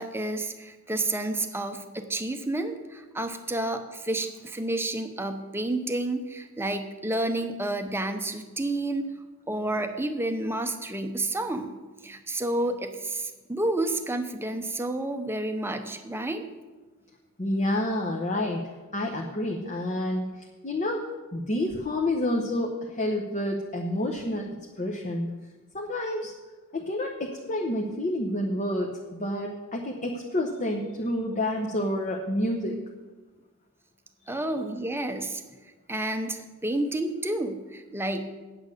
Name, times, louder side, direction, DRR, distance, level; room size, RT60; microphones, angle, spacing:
voice 1, 0.0-9.1 9.5-11.7 12.0-16.4 34.3-35.4 35.9-38.3, right 1 dB, 10° right, 7 dB, 0.7 m, -30 dB
voice 2, 17.4-20.3 20.6-21.0 21.3-24.5 24.8-25.3 25.7-26.3 26.7-32.8 34.2-34.5, left 1 dB, 35° left, 1 dB, 0.9 m, -29 dB
8.8 x 8.4 x 6.6 m, 1.2 s
head